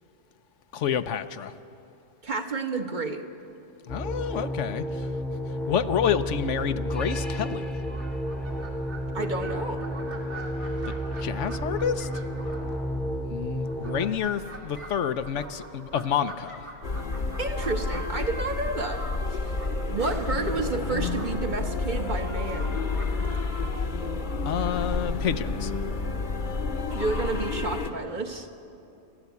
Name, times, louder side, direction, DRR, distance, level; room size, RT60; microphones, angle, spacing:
voice 1, 0.7-1.5 3.9-5.1 5.7-7.8 10.8-10.9 11.2-12.1 13.3-16.6 24.4-25.7, left 8 dB, 80° left, 11 dB, 1.0 m, -29 dB
voice 2, 2.2-3.2 9.1-9.9 17.4-19.0 19.3-19.6 19.9-22.8 26.9-28.5, right 3 dB, 40° right, 5 dB, 1.3 m, -30 dB
sound 1, 3.9-14.1, equal, ahead, 0.9 m, -32 dB
Fowl, 7.6-24.9, right 2 dB, 70° right, 3.6 m, -45 dB
sound 2, 16.8-27.9, left 3 dB, 45° left, 1.1 m, -30 dB
28.0 x 13.0 x 8.3 m, 2.8 s
omnidirectional pair, 1.2 m